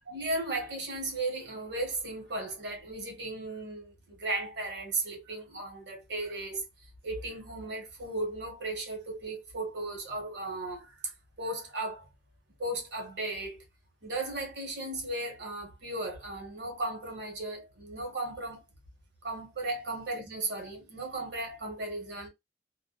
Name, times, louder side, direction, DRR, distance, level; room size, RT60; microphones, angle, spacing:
voice 1, 0.1-6.6 7.0-11.1 11.4-12.1 12.6-13.7 14.0-18.6 19.2-22.3, right 2 dB, 75° right, 1.2 m, -36 dB
2.5 x 2.2 x 2.3 m
head